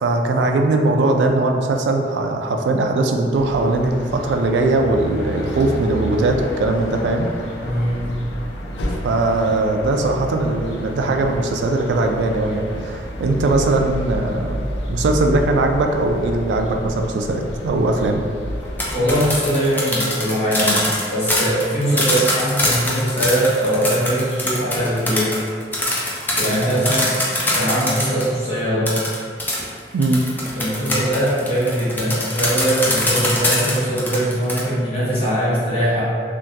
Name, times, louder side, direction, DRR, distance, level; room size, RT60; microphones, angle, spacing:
voice 1, 0.0-7.3 9.0-14.6 14.9-18.2 29.9-30.2, right 2 dB, 80° right, 3 dB, 0.3 m, -20 dB
sound 1, 3.3-19.4, equal, 80° left, 0.4 m, -30 dB
voice 2, 7.6-8.1 18.9-25.3 26.3-27.1 27.5-28.9 30.6-36.0, equal, 35° left, -11 dB, 0.8 m, -21 dB
sound 2, 18.6-28.3 28.9-34.6, left 1 dB, 10° left, 0.3 m, -23 dB
3.4 x 2.2 x 2.7 m, 2.2 s
head